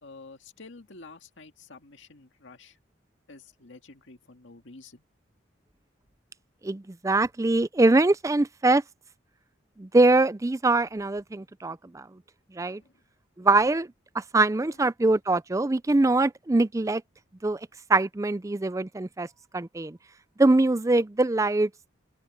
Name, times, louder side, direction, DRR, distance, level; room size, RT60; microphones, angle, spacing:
voice 1, 0.0-2.8 3.3-5.0 12.7-12.9, left 3 dB, 90° left, 1.9 m, -49 dB
voice 2, 6.6-8.8 9.8-12.1 12.5-12.8 13.4-13.9 14.1-17.0 17.4-17.6 17.9-19.3 19.5-20.0 20.4-21.7, right 2 dB, 15° right, 0.4 m, -23 dB
open air
head